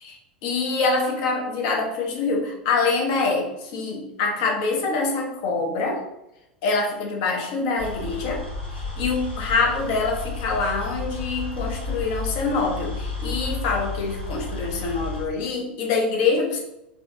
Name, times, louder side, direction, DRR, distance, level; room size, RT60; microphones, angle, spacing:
voice 1, 0.0-6.0 6.6-8.4 8.7-16.6, left 4 dB, 50° left, 1 dB, 0.9 m, -25 dB
sound 1, 7.8-15.2, left 4 dB, 85° left, 1.0 m, -32 dB
3.9 x 2.8 x 3.5 m, 0.88 s
figure-of-eight pair, 85°, 5 cm